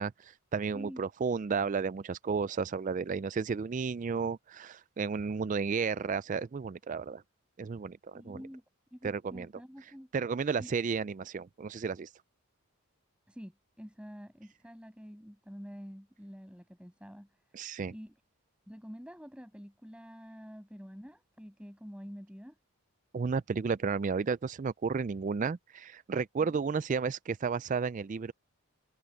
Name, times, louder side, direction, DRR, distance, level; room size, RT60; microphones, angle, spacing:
voice 1, 0.0-7.2 7.6-8.4 9.0-9.5 10.1-12.1 17.5-17.9 23.1-28.3, right 5 dB, 35° right, 0.3 m, -32 dB
voice 2, 8.1-8.6 8.9-10.1 10.6-10.7 13.3-17.3 17.9-18.1 18.7-22.5, equal, 5° right, 7.2 m, -47 dB
head